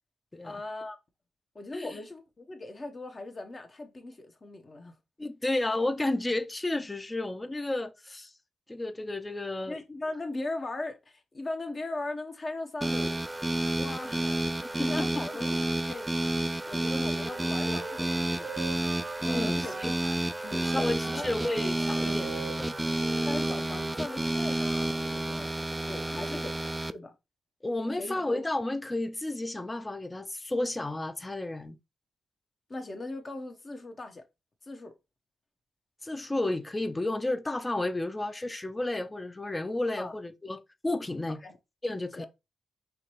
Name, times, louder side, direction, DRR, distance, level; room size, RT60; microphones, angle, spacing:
voice 1, 0.4-1.0 1.5-5.0 9.7-13.2 13.7-16.1 16.7-18.5 19.3-19.8 20.4-21.3 23.3-26.6 26.9-27.1 28.0-28.2 32.7-34.2 34.7-34.9 40.0-40.1 41.4-41.6 42.2-42.3, left 2 dB, 40° left, 1.1 m, -39 dB
voice 2, 5.2-8.3 8.7-9.8 14.8-15.2 19.2-19.9 20.5-22.8 26.3-26.4 27.6-31.8 36.0-41.4 41.8-42.3, left 2 dB, 20° left, 0.6 m, -32 dB
sound 1, 12.8-26.9, right 1 dB, 15° right, 0.3 m, -30 dB
Wind instrument woodwind instrument, 17.2-20.2 20.6-24.0, right 6 dB, 70° right, 0.5 m, -44 dB
5.0 x 3.0 x 3.1 m
supercardioid pair, 45°, 0 cm